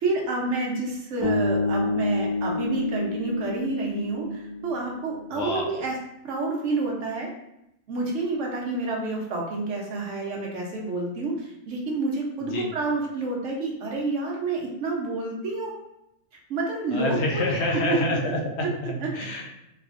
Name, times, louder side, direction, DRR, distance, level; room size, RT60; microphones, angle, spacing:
voice 1, 0.0-6.0 6.2-7.3 7.9-15.7 16.5-18.0 19.0-19.1, right 3 dB, 60° right, -1 dB, 1.0 m, -29 dB
sound 1, 1.2-5.4, left 2 dB, 75° left, 1.6 m, -28 dB
voice 2, 5.3-5.7 12.4-12.7 16.9-19.5, left 2 dB, 55° left, -1 dB, 0.8 m, -27 dB
3.3 x 2.9 x 2.5 m, 0.85 s
omnidirectional pair, 1.6 m